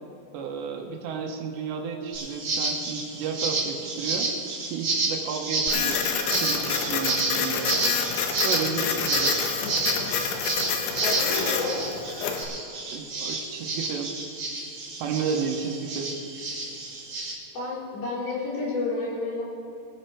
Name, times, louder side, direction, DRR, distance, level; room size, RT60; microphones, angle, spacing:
voice 1, 0.3-4.3 4.6-7.7 8.4-9.4 12.9-14.2 15.0-16.2, right 6 dB, 80° right, 3 dB, 3.1 m, -32 dB
sound 1, 2.1-17.3, right 3 dB, 50° right, 2.8 m, -30 dB
Printer, 5.7-12.4, left 6 dB, 70° left, 2.4 m, -28 dB
voice 2, 11.0-11.8 17.5-19.4, left 3 dB, 50° left, -6 dB, 4.1 m, -30 dB
22.0 x 7.9 x 4.5 m, 2.6 s
omnidirectional pair, 5.1 m